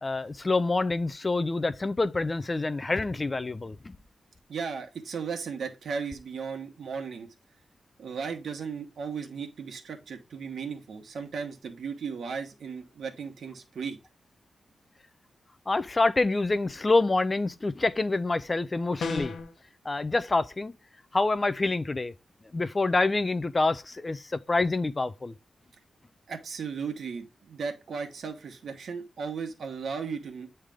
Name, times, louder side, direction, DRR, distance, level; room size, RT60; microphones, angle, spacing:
voice 1, 0.0-4.0 15.7-19.3 19.8-20.7 21.1-22.1 22.5-25.3, left 3 dB, 25° left, 0.3 m, -27 dB
voice 2, 4.5-7.3 8.0-14.0 26.3-30.5, right 5 dB, 75° right, 1.2 m, -36 dB
sound 1, 19.0-19.5, left 4 dB, 90° left, 0.9 m, -32 dB
8.8 x 3.3 x 3.5 m
wide cardioid pair, 155°, 0 cm